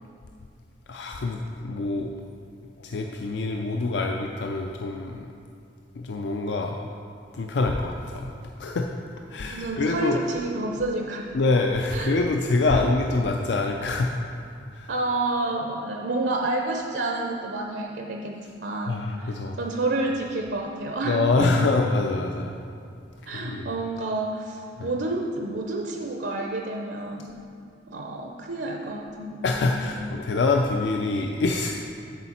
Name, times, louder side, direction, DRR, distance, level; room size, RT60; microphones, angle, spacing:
voice 1, 0.9-2.1 2.8-5.3 6.0-6.8 7.3-8.9 9.3-10.2 11.3-14.1 14.7-14.9 18.9-19.6 21.0-22.6 23.3-23.7 24.8-24.9 29.4-31.8, left 3 dB, 70° left, 2 dB, 0.4 m, -25 dB
voice 2, 9.5-11.3 11.9-12.2 12.7-12.9 14.9-21.5 23.3-27.3 27.9-30.1, right 2 dB, 70° right, 1 dB, 0.6 m, -29 dB
8.2 x 7.1 x 4.3 m, 2.5 s
head